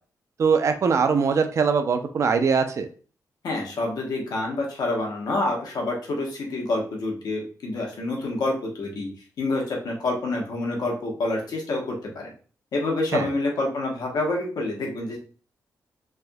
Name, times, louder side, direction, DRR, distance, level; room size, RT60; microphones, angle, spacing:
voice 1, 0.4-2.9 13.1-13.3, right 5 dB, 50° right, 7 dB, 0.4 m, -22 dB
voice 2, 3.4-9.1 9.4-12.3 12.7-15.2, left 2 dB, 75° left, -1 dB, 0.9 m, -27 dB
3.3 x 2.6 x 2.3 m, 0.40 s
wide cardioid pair, 150°, 7 cm